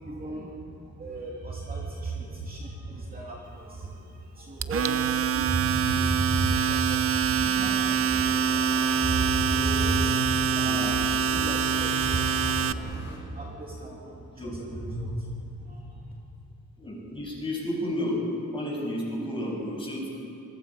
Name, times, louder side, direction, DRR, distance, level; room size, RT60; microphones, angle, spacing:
voice 1, 0.0-16.1, right 2 dB, 30° right, -3 dB, 2.8 m, -34 dB
Domestic sounds home sounds, 4.6-12.7, right 7 dB, 45° right, 0.6 m, -25 dB
sound 1, 7.3-13.2, left 2 dB, 35° left, 6.5 m, -44 dB
voice 2, 16.8-18.2 18.5-20.1, left 1 dB, 15° left, -3 dB, 7.0 m, -32 dB
28.0 x 22.5 x 5.0 m, 2.6 s
wide cardioid pair, 140°, 32 cm